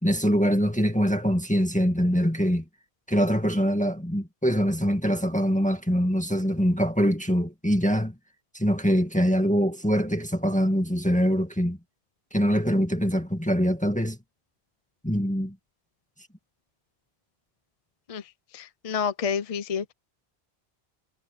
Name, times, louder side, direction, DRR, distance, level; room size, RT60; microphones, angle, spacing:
voice 1, 0.0-2.6 3.1-8.1 8.5-11.8 12.3-14.2 15.0-15.6, equal, 5° left, 2.0 m, -24 dB
voice 2, 18.5-19.9, left 6 dB, 40° left, 0.7 m, -29 dB
omnidirectional pair, 1.1 m